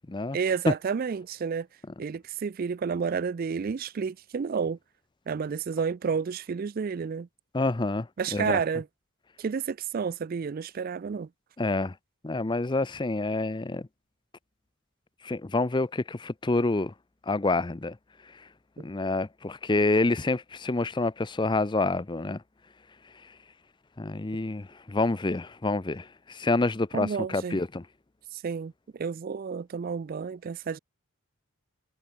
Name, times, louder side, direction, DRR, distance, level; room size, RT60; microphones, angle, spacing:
voice 1, 0.3-1.7 2.0-4.8 5.3-7.3 8.2-8.8 9.4-11.3 26.9-27.6 28.3-30.8, right 6 dB, 40° right, 0.3 m, -30 dB
voice 2, 7.5-8.6 11.6-11.9 12.2-13.9 15.2-16.9 17.3-18.0 18.3-18.5 18.8-22.4 23.2-23.3 24.0-27.8, left 2 dB, 20° left, 0.5 m, -27 dB
head